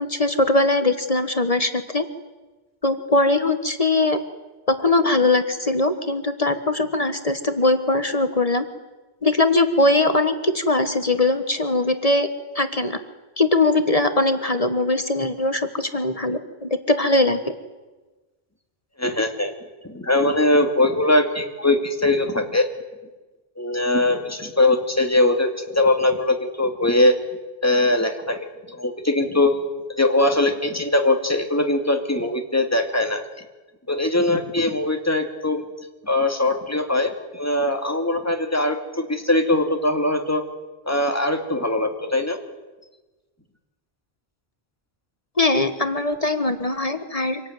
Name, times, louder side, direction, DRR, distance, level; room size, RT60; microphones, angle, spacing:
voice 1, 0.0-2.0 2.8-4.2 4.7-8.7 9.2-12.3 12.5-13.0 13.4-17.4 45.4-47.4, left 2 dB, 35° left, 9 dB, 1.5 m, -21 dB
voice 2, 19.0-19.5 19.8-22.7 23.6-27.2 27.6-29.6 29.9-33.2 33.9-35.6 36.0-40.4 40.9-42.4, left 2 dB, 15° left, 4 dB, 2.4 m, -21 dB
26.0 x 17.5 x 9.4 m, 1.2 s
omnidirectional pair, 1.0 m